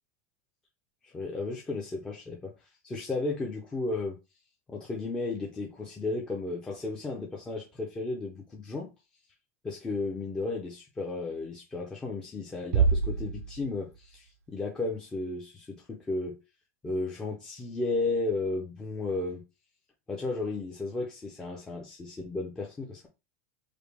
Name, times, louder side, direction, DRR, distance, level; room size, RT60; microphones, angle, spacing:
voice 1, 1.0-4.2 4.7-8.9 9.6-16.4 16.8-19.4 20.1-23.1, left 3 dB, 10° left, 0.5 m, -34 dB
sound 1, 12.7-14.2, right 5 dB, 70° right, 0.6 m, -27 dB
4.9 x 2.3 x 3.4 m
supercardioid pair, 175°, 8 cm